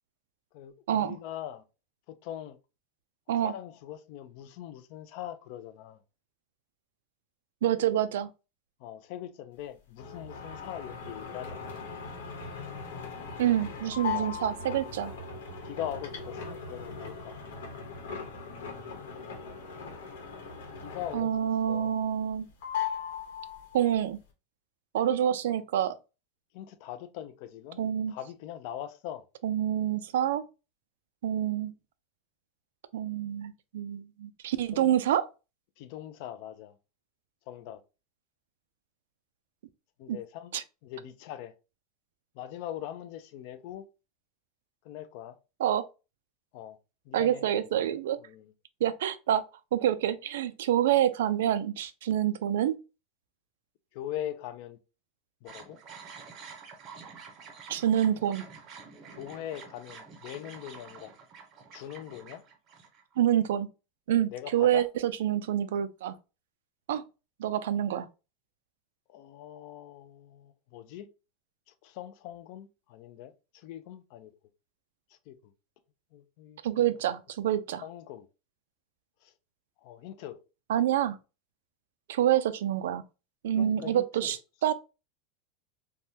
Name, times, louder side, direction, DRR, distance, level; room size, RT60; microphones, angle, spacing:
voice 1, 0.5-1.6 2.1-2.6 3.3-6.0 8.8-11.8 14.1-14.4 15.0-15.2 15.6-17.4 20.8-21.9 26.5-27.8 28.1-29.2 34.7-35.0 35.8-36.7 37.5-37.8 40.0-40.5 40.8-41.5 42.4-43.8 44.8-45.4 46.5-46.8 47.1-47.8 48.2-48.5 53.9-54.8 55.4-55.8 59.1-61.1 61.7-62.4 64.3-64.9 69.1-71.1 71.8-74.3 75.3-75.4 76.1-77.1 77.8-78.3 79.2-79.3 79.8-80.4 83.6-84.4, left 11 dB, 45° left, 0.3 m, -41 dB
voice 2, 7.6-8.3 13.4-15.1 21.1-22.5 23.7-24.2 24.9-25.9 27.8-28.1 29.4-30.4 31.2-31.7 32.9-35.3 40.1-40.2 40.5-40.6 45.6-45.8 47.1-48.2 48.8-49.4 49.7-52.7 57.7-58.4 63.2-63.7 64.1-66.2 66.9-67.0 67.4-68.1 76.6-77.8 80.7-81.2 82.1-83.0 83.4-84.7, right 11 dB, 90° right, 0.3 m, -27 dB
sound 1, 10.0-21.5 21.8-22.4 22.6-23.9, left 6 dB, 90° left, 1.0 m, -39 dB
sound 2, 55.5-63.4, right 5 dB, 30° right, 0.6 m, -48 dB
3.4 x 2.1 x 2.7 m
supercardioid pair, 175°, 0 cm